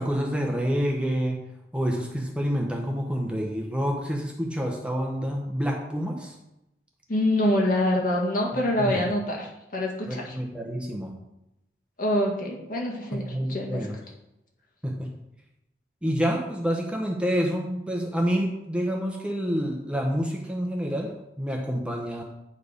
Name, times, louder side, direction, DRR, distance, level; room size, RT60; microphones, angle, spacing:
voice 1, 0.0-1.4 1.7-6.4 8.8-9.0 10.1-11.1 13.1-14.0 14.8-15.1 16.0-22.2, equal, 5° right, 0 dB, 0.9 m, -28 dB
voice 2, 7.1-10.4 12.0-13.9, left 1 dB, 50° left, -1 dB, 1.9 m, -25 dB
9.4 x 4.7 x 5.0 m, 0.89 s
head